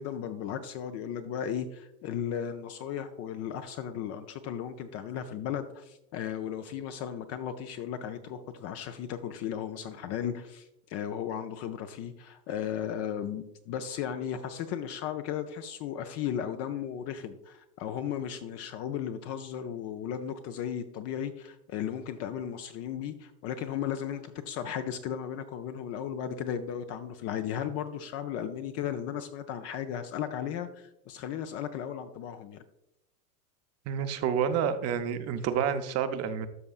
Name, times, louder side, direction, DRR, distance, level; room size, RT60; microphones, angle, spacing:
voice 1, 0.0-32.6, left 9 dB, 35° left, 8 dB, 0.4 m, -35 dB
voice 2, 33.9-36.5, right 8 dB, 35° right, 9 dB, 0.6 m, -29 dB
12.5 x 5.3 x 2.4 m, 0.83 s
hypercardioid pair, 105°, 48 cm